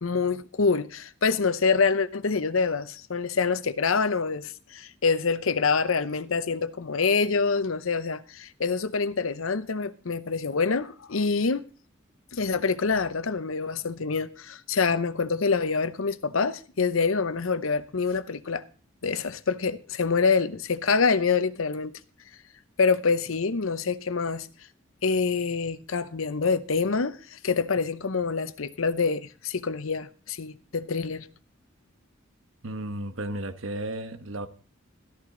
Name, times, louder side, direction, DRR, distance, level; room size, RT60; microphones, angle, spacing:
voice 1, 0.0-11.6 12.3-18.6 19.0-21.9 22.8-24.5 25.0-31.3, left 4 dB, 85° left, 0.8 m, -26 dB
voice 2, 32.6-34.5, right 1 dB, 75° right, 1.2 m, -33 dB
13.0 x 13.0 x 3.8 m
head